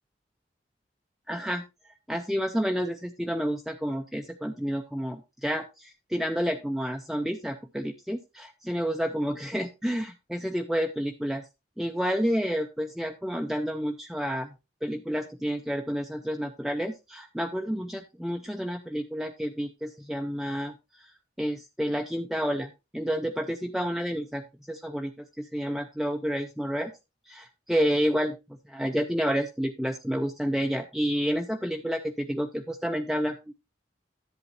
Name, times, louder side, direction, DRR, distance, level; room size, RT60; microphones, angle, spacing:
voice 1, 1.3-1.6 2.1-11.4 11.8-14.5 14.8-21.1 21.4-26.9 27.3-28.4 28.7-33.5, equal, ahead, 4 dB, 0.5 m, -30 dB
11.0 x 8.1 x 2.6 m, 0.25 s
head